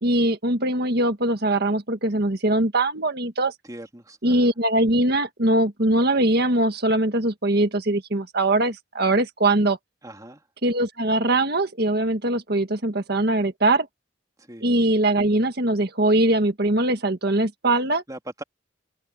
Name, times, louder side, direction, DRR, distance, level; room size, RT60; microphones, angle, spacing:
voice 1, 0.0-3.5 4.2-9.8 10.6-13.9 14.6-18.0, right 1 dB, 55° right, 1.8 m, -21 dB
voice 2, 3.7-4.5 10.0-10.4 14.4-14.7 18.1-18.4, right 1 dB, 20° right, 2.9 m, -40 dB
open air
head